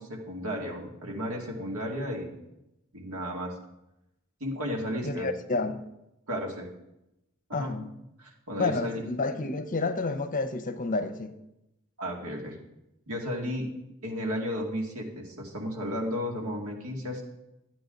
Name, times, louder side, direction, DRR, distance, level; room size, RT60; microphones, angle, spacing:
voice 1, 0.0-2.4 2.9-3.5 4.4-5.3 6.3-6.7 7.5-7.7 8.2-9.0 12.0-12.6 13.1-13.7 14.0-17.2, equal, 80° right, 2.1 m, -33 dB
voice 2, 5.0-5.8 7.5-7.9 8.6-11.3, left 3 dB, 40° left, 0.7 m, -30 dB
12.0 x 8.7 x 3.9 m
head